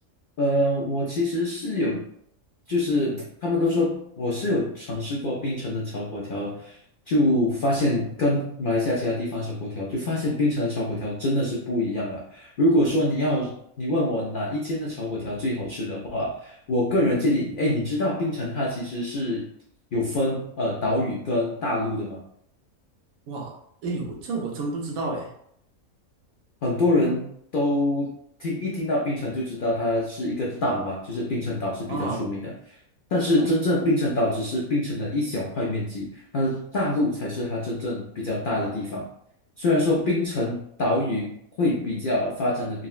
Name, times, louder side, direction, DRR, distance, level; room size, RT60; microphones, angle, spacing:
voice 1, 0.4-2.1 2.7-6.8 7.1-19.5 19.9-22.2 26.6-28.1 28.4-32.8 33.1-39.1 39.6-42.9, left 1 dB, 85° left, -3 dB, 0.4 m, -25 dB
voice 2, 23.8-25.3 31.9-32.2 33.4-33.5, right 3 dB, 75° right, 0 dB, 1.1 m, -30 dB
3.7 x 2.0 x 2.3 m, 0.70 s
omnidirectional pair, 1.5 m